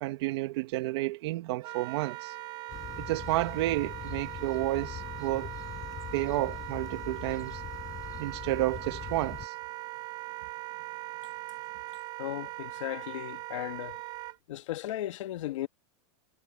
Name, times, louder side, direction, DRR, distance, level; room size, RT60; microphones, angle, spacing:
voice 1, 0.0-2.3 3.0-5.5 6.1-7.6 8.2-9.5, right 18 dB, 55° right, 1.8 m, -31 dB
Wind instrument woodwind instrument, 1.6-14.4, right 17 dB, 25° right, 0.6 m, -41 dB
sound 1, 2.7-9.5, left 10 dB, 20° left, 4.6 m, -42 dB
voice 2, 12.2-14.0 14.5-15.7, left 14 dB, 75° left, 1.7 m, -36 dB
supercardioid pair, 175°, 16 cm